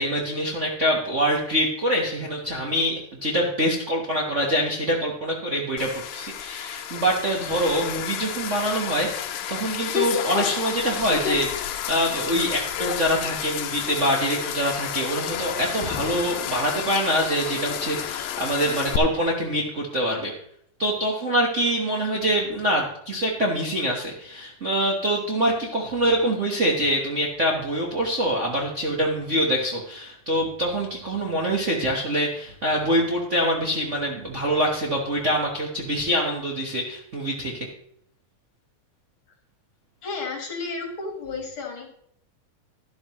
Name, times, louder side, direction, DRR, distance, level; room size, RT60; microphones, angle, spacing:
voice 1, 0.0-20.3 20.8-37.7, equal, 90° right, -2 dB, 0.6 m, -25 dB
sound 1, 5.8-19.0, left 11 dB, 75° left, 1.8 m, -30 dB
voice 2, 40.0-41.9, left 4 dB, 45° left, 2 dB, 2.3 m, -32 dB
12.0 x 11.5 x 3.1 m, 0.68 s
omnidirectional pair, 3.5 m